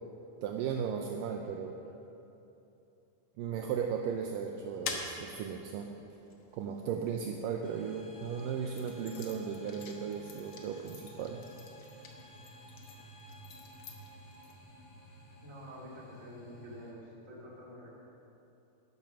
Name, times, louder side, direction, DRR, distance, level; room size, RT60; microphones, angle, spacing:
voice 1, 0.4-1.8 3.4-5.9 6.5-11.4, right 7 dB, 80° right, 3 dB, 2.0 m, -36 dB
sound 1, 4.1-7.7 8.3-14.6, left 4 dB, 70° left, 1.5 m, -47 dB
sound 2, 7.6-16.9, equal, 50° left, 2.7 m, -53 dB
voice 2, 15.4-17.9, equal, 25° right, -4 dB, 2.2 m, -48 dB
12.5 x 10.5 x 6.1 m, 2.9 s
omnidirectional pair, 4.4 m